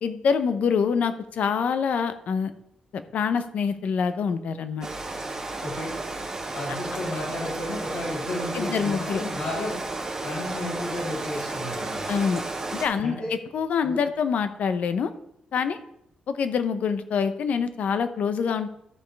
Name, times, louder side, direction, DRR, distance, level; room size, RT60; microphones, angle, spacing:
voice 1, 0.0-2.5 2.9-4.9 8.5-9.2 12.1-12.4 12.8-15.1 15.5-15.8 16.3-18.7, left 6 dB, 65° left, 10 dB, 0.8 m, -25 dB
Rain, 4.8-12.9, right 2 dB, 25° right, 2.3 m, -33 dB
voice 2, 5.6-5.9 6.5-9.8 10.2-12.0 13.0-13.3 13.8-14.0, left 1 dB, 80° left, -9 dB, 3.6 m, -32 dB
14.0 x 5.2 x 3.4 m, 0.77 s
cardioid pair, 125°, 3 cm